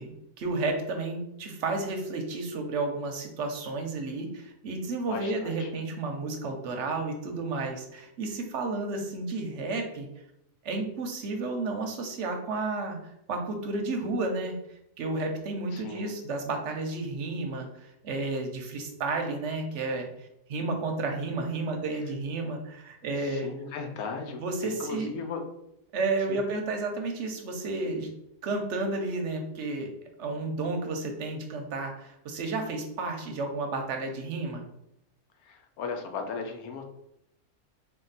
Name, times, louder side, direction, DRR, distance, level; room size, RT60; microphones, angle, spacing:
voice 1, 0.0-10.1 10.6-13.0 13.3-14.5 15.0-20.1 20.5-23.5 24.4-25.1 25.9-28.1 28.4-29.9 30.2-34.6, right 3 dB, 60° right, 4 dB, 0.8 m, -32 dB
voice 2, 5.1-5.7 15.7-16.1 23.2-25.4 26.3-26.4 35.4-36.8, left 5 dB, 75° left, 4 dB, 1.1 m, -37 dB
3.6 x 2.3 x 3.9 m, 0.79 s
omnidirectional pair, 1.6 m